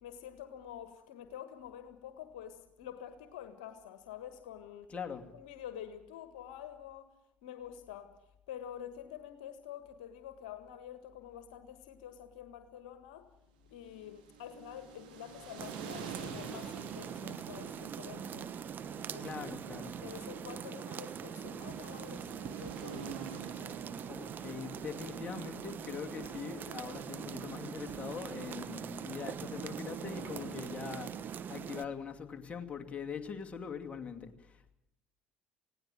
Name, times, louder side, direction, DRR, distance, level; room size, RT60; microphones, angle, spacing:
voice 1, 0.0-4.9 5.3-7.1 7.4-8.1 8.5-13.3 13.7-18.5 19.0-19.5 20.0-23.2 23.6-23.8, left 10 dB, 75° left, 10 dB, 1.6 m, -48 dB
voice 2, 4.9-5.3 19.2-20.0 24.1-34.7, left 6 dB, 30° left, 4 dB, 2.6 m, -42 dB
sound 1, 13.7-31.6, right 5 dB, 80° right, 4.1 m, -51 dB
sound 2, 15.6-31.9, right 8 dB, 45° right, 1.2 m, -42 dB
19.5 x 17.0 x 9.4 m, 0.81 s
hypercardioid pair, 65°, 5 cm